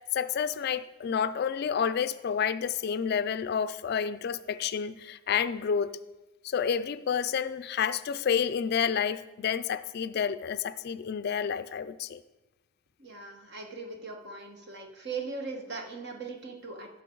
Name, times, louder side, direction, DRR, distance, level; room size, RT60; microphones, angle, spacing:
voice 1, 0.1-5.9 6.4-12.2, left 7 dB, 55° left, 14 dB, 0.4 m, -29 dB
voice 2, 13.0-16.9, right 4 dB, 55° right, 2 dB, 1.3 m, -39 dB
14.5 x 6.3 x 3.9 m, 1.1 s
head